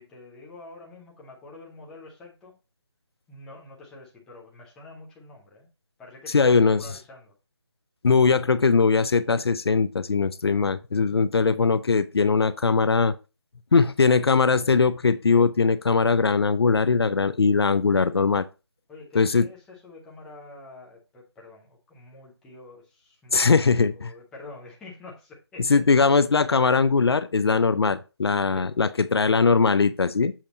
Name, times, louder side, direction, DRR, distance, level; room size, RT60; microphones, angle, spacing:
voice 1, 0.0-2.5 3.3-5.7 6.0-7.3 18.9-25.7 28.5-28.7, left 3 dB, 5° left, -3 dB, 0.8 m, -46 dB
voice 2, 6.3-6.8 8.0-13.1 13.7-18.4 19.1-19.5 23.3-24.1 25.7-30.3, left 4 dB, 65° left, 14 dB, 0.5 m, -20 dB
7.3 x 2.7 x 5.2 m, 0.30 s
figure-of-eight pair, 160°, 14 cm